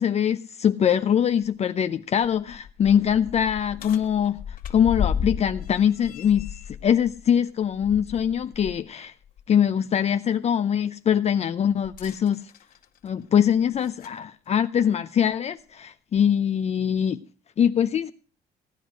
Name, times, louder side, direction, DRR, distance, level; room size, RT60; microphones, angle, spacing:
voice 1, 0.0-9.1 9.5-12.5 13.0-17.2 17.6-18.1, left 8 dB, 40° left, 0.6 m, -23 dB
sound 1, 1.4-1.5 2.1-8.8 9.2-9.4 11.8-14.2 15.2-15.3 16.1-16.2, left 8 dB, 55° left, 1.8 m, -34 dB
16.5 x 10.0 x 6.2 m
cardioid pair, 110°, 17 cm